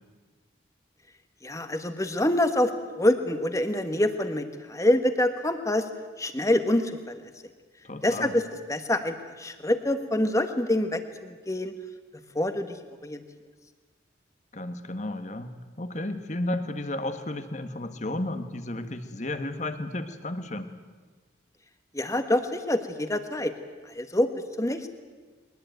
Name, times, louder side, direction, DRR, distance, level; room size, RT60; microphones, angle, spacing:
voice 1, 1.4-2.7 3.0-5.9 6.2-7.2 8.0-8.4 8.7-11.7 12.3-12.8 13.0-13.2 21.9-23.5 23.8-24.3 24.6-24.9, left 1 dB, 15° left, 8 dB, 1.4 m, -26 dB
voice 2, 7.8-8.4 14.5-20.7, left 1 dB, 35° left, 9 dB, 1.5 m, -33 dB
22.0 x 20.0 x 9.2 m, 1.4 s
head